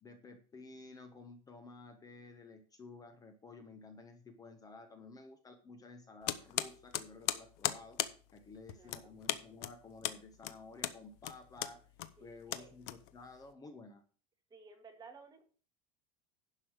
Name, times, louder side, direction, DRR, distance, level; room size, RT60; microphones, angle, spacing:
voice 1, 0.0-8.0 8.3-11.8 12.2-14.0, left 3 dB, 20° left, 7 dB, 1.2 m, -53 dB
sound 1, 6.2-13.4, left 13 dB, 60° left, 0.9 m, -38 dB
voice 2, 8.7-9.2 12.2-12.7 14.5-15.4, right 4 dB, 20° right, 4 dB, 1.8 m, -56 dB
11.0 x 5.6 x 6.5 m, 0.40 s
supercardioid pair, 145°, 20 cm